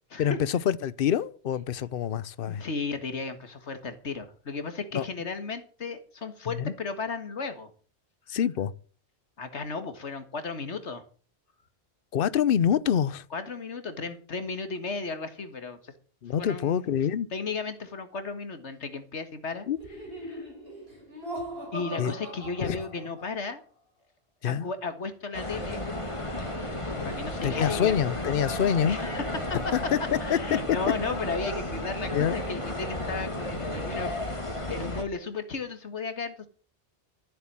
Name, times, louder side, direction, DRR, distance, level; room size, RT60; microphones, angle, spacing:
voice 1, 0.2-2.6 4.9-5.0 6.6-6.7 8.3-8.7 12.1-13.2 16.2-17.3 19.7-19.8 22.0-22.1 22.6-22.8 24.4-24.7 27.0-27.1 27.4-29.0 29.7-30.4 32.1-32.4, left 9 dB, 55° left, 0.9 m, -26 dB
voice 2, 2.5-7.7 9.4-11.0 13.3-15.9 16.4-16.8 17.3-19.7 20.2-20.4 21.7-23.6 24.4-25.8 27.0-28.0 28.8-29.3 30.2-34.1 34.7-36.5, left 4 dB, 90° left, 2.1 m, -34 dB
Laughter, 19.8-23.5, equal, 60° right, 5.6 m, -40 dB
sound 1, 25.3-35.0, left 1 dB, 25° left, 2.4 m, -33 dB
13.5 x 8.0 x 7.5 m
omnidirectional pair, 1.1 m